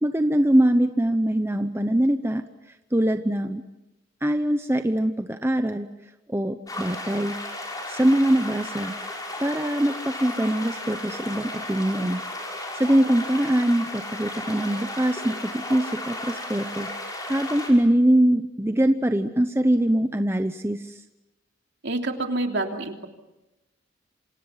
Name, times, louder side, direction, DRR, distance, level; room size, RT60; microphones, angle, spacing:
voice 1, 0.0-2.4 2.9-3.6 4.2-5.9 6.3-7.4 7.9-8.9 9.4-12.2 12.7-21.0, right 1 dB, 10° right, 7 dB, 0.8 m, -23 dB
sound 1, 6.7-17.7, left 1 dB, 20° left, 5.8 m, -34 dB
voice 2, 21.8-23.1, right 2 dB, 55° right, 3 dB, 3.1 m, -27 dB
28.0 x 27.0 x 5.8 m, 0.97 s
head